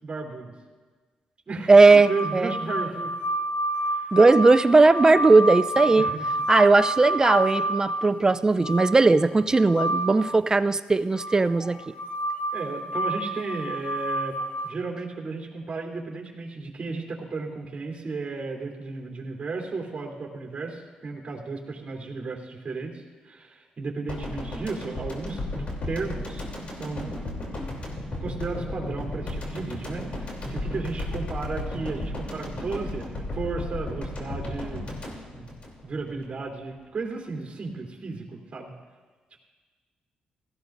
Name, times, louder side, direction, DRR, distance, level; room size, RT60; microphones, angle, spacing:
voice 1, 0.0-0.5 1.5-3.1 3.8-4.2 5.9-6.3 12.5-26.5 26.7-27.1 28.2-34.9 35.3-35.6 35.8-38.7, right 3 dB, 40° right, 0 dB, 3.3 m, -34 dB
voice 2, 1.7-2.5 4.1-6.1 6.5-11.8, right 3 dB, 25° right, 13 dB, 0.4 m, -18 dB
sound 1, 1.9-10.4 11.2-14.7, right 1 dB, 75° left, 1.0 m, -29 dB
sound 2, 24.1-36.3 36.5-36.7, left 1 dB, 50° left, 3.2 m, -34 dB
17.0 x 14.5 x 2.6 m, 1.4 s
cardioid pair, 75°, 3 cm